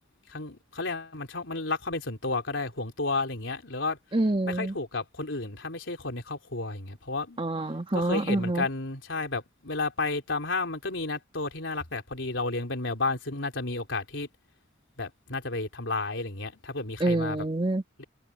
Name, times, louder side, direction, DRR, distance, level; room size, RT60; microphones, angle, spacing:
voice 1, 0.3-4.0 4.5-7.4 7.9-14.3 15.0-17.5 18.0-18.1, left 3 dB, 80° left, 3.6 m, -32 dB
voice 2, 4.1-4.7 7.4-8.7 17.0-17.8, right 2 dB, 30° right, 1.6 m, -26 dB
head